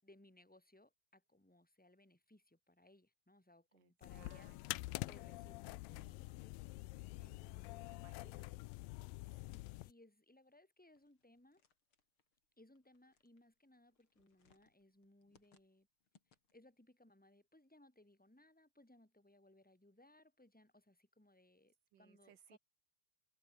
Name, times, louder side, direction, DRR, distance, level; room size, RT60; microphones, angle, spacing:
voice 1, 0.0-6.6 7.2-7.9 9.1-11.6 12.6-15.9 16.3-22.6, left 1 dB, ahead, 5.1 m, -67 dB
voice 2, 3.7-4.6 7.8-8.5 21.9-22.6, right 10 dB, 65° right, 3.4 m, -66 dB
sound 1, 4.0-9.9, left 20 dB, 80° left, 2.3 m, -47 dB
sound 2, 10.9-16.8, left 6 dB, 40° left, 3.0 m, -76 dB
omnidirectional pair, 4.2 m